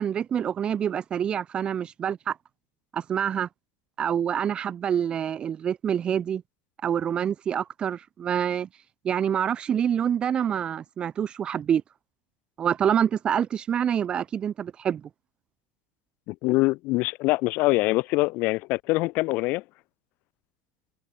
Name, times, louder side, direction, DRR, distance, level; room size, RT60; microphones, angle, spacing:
voice 1, 0.0-2.4 2.9-3.5 4.0-6.4 6.8-8.7 9.0-11.8 12.6-15.0, right 8 dB, 25° right, 1.3 m, -26 dB
voice 2, 16.3-19.6, left 22 dB, 50° left, 4.1 m, -24 dB
supercardioid pair, 145°, 4 cm